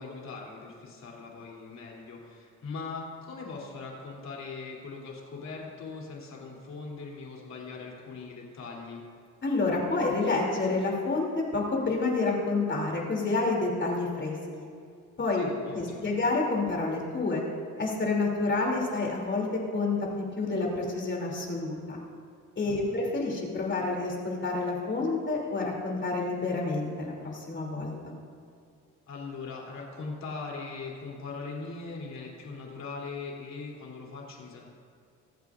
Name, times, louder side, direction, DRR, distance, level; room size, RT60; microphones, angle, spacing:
voice 1, 0.0-9.0 15.3-16.1 22.6-23.0 29.1-34.7, left 4 dB, 65° left, -2 dB, 3.1 m, -40 dB
voice 2, 9.4-14.3 15.2-15.4 15.7-17.4 17.8-22.0 22.6-28.1, left 3 dB, 40° left, -1 dB, 2.8 m, -29 dB
24.0 x 8.2 x 2.5 m, 2.4 s
cardioid pair, 90°, 30 cm